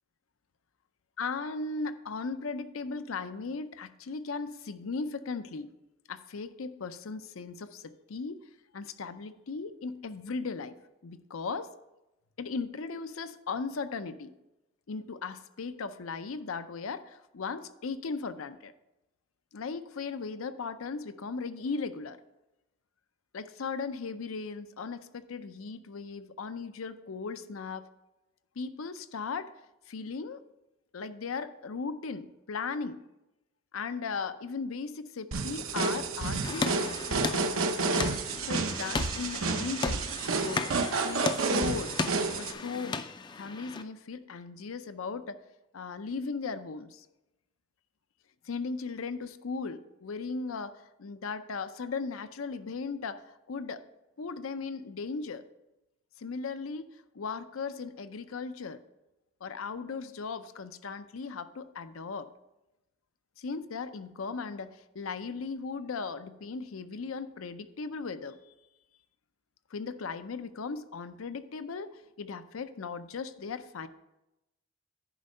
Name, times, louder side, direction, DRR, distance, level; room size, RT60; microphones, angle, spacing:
voice 1, 1.2-5.7 6.1-8.4 8.7-10.8 11.0-11.7 12.4-14.3 14.9-18.7 19.5-22.2 23.3-27.9 28.6-29.5 29.9-30.4 30.9-33.0 33.7-36.8 38.4-40.0 40.4-40.7 41.0-41.9 42.3-43.0 43.4-45.4 45.7-47.1 48.4-53.8 54.2-55.4 56.2-56.9 57.1-58.8 59.4-62.3 63.4-68.4 69.7-71.9 72.2-73.9, left 4 dB, 80° left, 11 dB, 0.6 m, -37 dB
sound 1, 35.3-42.5, right 3 dB, 85° right, 0.8 m, -30 dB
sound 2, 36.4-43.8, left 4 dB, 20° left, 0.4 m, -36 dB
10.0 x 5.2 x 5.5 m, 0.96 s
head